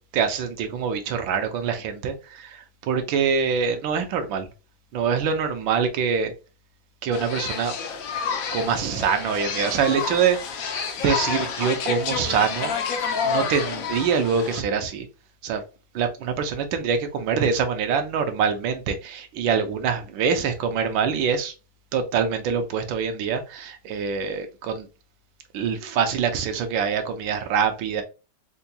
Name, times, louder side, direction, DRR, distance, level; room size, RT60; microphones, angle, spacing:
voice 1, 0.1-4.5 4.9-6.3 7.0-7.8 8.5-12.8 13.2-15.1 15.4-15.6 15.9-21.5 21.9-24.9 25.5-28.0, right 6 dB, 75° right, 1.4 m, -25 dB
sound 1, 7.1-14.6, left 6 dB, 75° left, 0.8 m, -29 dB
4.6 x 2.2 x 2.6 m
omnidirectional pair, 2.2 m